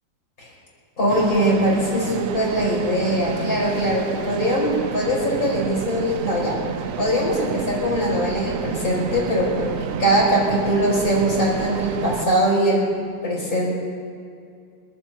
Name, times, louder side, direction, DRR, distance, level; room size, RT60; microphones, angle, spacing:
voice 1, 1.0-6.6 7.0-12.9 13.2-13.7, equal, 50° left, -5 dB, 5.4 m, -21 dB
sound 1, 1.1-12.3, right 8 dB, 70° right, 0.8 m, -30 dB
26.5 x 15.0 x 3.0 m, 2.3 s
omnidirectional pair, 2.0 m